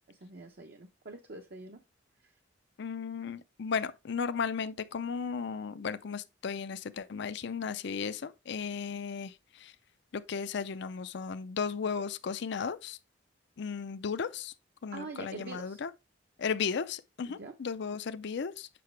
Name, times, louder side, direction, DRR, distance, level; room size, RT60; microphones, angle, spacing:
voice 1, 0.1-1.8 14.9-15.8 17.2-17.5, right 3 dB, 55° right, 0.8 m, -44 dB
voice 2, 2.8-9.3 9.6-9.7 10.1-13.0 13.6-14.5 14.8-15.9 16.4-18.7, left 6 dB, 65° left, 0.5 m, -35 dB
7.7 x 5.6 x 3.2 m
head